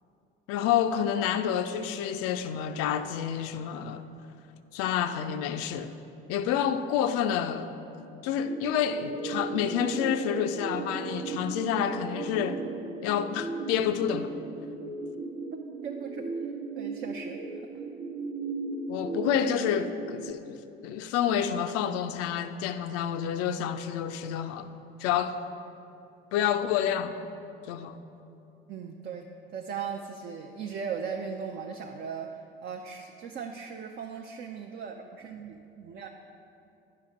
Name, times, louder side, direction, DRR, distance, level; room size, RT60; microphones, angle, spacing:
voice 1, 0.5-4.0 4.7-5.9 6.3-7.7 8.2-12.6 13.0-14.3 18.9-24.7 25.0-25.4 26.3-27.2 27.7-28.0, left 9 dB, 50° left, 0.6 m, -29 dB
sound 1, 8.4-20.3, right 3 dB, 60° right, 1.0 m, -36 dB
voice 2, 15.5-16.4 16.8-17.4 28.7-36.1, right 6 dB, 35° right, 0.6 m, -38 dB
9.8 x 5.6 x 5.0 m
figure-of-eight pair, 60°, 29 cm